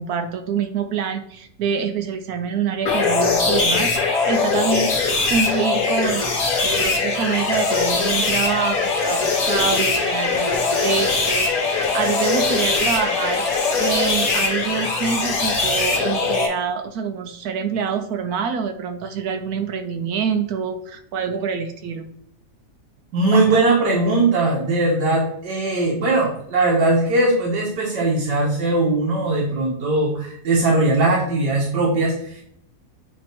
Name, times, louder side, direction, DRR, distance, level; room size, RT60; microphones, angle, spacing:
voice 1, 0.0-4.9 5.3-6.3 6.6-13.5 13.8-22.1 23.3-23.6, right 6 dB, 70° right, 8 dB, 1.1 m, -26 dB
sound 1, 2.8-16.5, left 4 dB, 55° left, 1.9 m, -21 dB
voice 2, 23.1-32.4, right 2 dB, 85° right, -3 dB, 1.9 m, -20 dB
8.2 x 2.9 x 4.4 m, 0.71 s
omnidirectional pair, 1.8 m